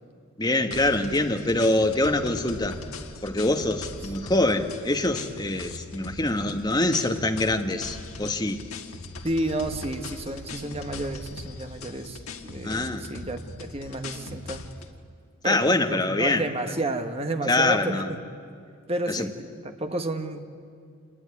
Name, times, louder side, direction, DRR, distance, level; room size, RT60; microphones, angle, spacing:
voice 1, 0.4-2.8 3.2-8.6 12.6-13.1 15.4-16.4 17.5-18.1 19.1-19.3, left 2 dB, 20° left, 5 dB, 1.2 m, -24 dB
sound 1, 0.7-14.9, left 3 dB, 85° left, 1.7 m, -40 dB
voice 2, 9.2-14.6 15.4-18.2 18.9-20.4, right 1 dB, 30° right, 6 dB, 1.4 m, -31 dB
27.0 x 20.0 x 9.8 m, 2.3 s
head